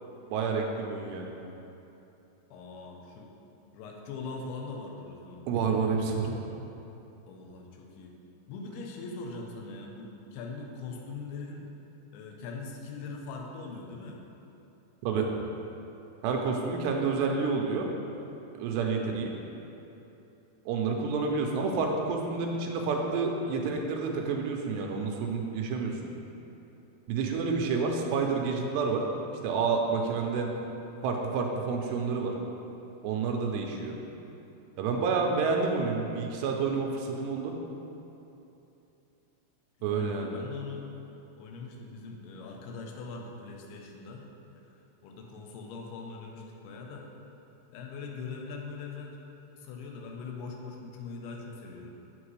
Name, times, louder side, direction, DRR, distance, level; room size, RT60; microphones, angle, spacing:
voice 1, 0.3-1.3 5.5-6.4 15.0-15.3 16.2-17.9 18.5-19.3 20.7-26.0 27.1-29.0 29.4-30.5 31.0-32.3 33.0-34.0 34.8-37.6 39.8-40.3, right 4 dB, 85° right, 1 dB, 2.7 m, -29 dB
voice 2, 2.5-3.3 3.7-5.5 7.3-8.1 8.5-11.7 12.1-14.2 16.9-17.0 27.2-27.5 39.8-40.9 41.4-44.3 44.6-44.8 45.0-47.1 47.7-49.2 49.6-51.9, left 4 dB, 80° left, 0 dB, 2.6 m, -41 dB
8.1 x 8.0 x 3.2 m, 2.9 s
omnidirectional pair, 5.0 m